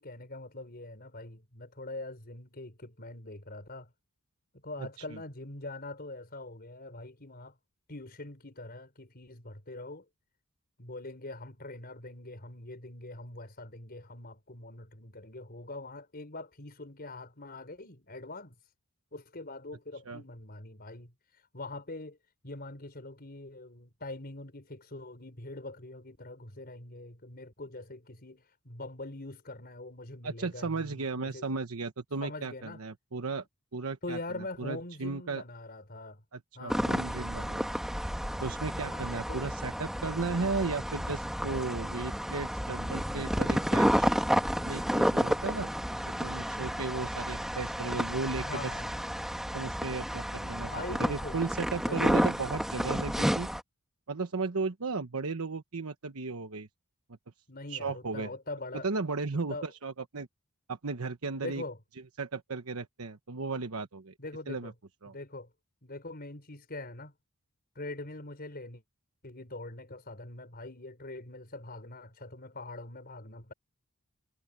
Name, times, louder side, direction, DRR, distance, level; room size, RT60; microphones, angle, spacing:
voice 1, 0.0-3.9 4.6-7.6 7.9-10.0 10.8-18.5 19.1-22.2 22.4-31.5 32.2-32.8 34.0-36.2 36.5-37.0 38.9-39.5 48.3-48.9 50.6-51.4 51.9-52.0 57.5-58.9 59.5-59.7 61.4-61.8 64.2-64.7 65.1-65.5 65.8-67.1 67.7-68.8 69.2-73.5, left 2 dB, 45° left, 5.0 m, -43 dB
voice 2, 30.2-33.4 33.7-35.4 36.3-37.8 38.4-44.1 44.6-48.7 49.5-53.5 54.1-56.7 57.7-58.3 58.8-60.3 60.7-61.6 62.2-64.1 64.5-64.7 65.0-65.1, right 4 dB, 85° right, 1.1 m, -35 dB
sound 1, 36.7-53.6, equal, ahead, 1.6 m, -31 dB
head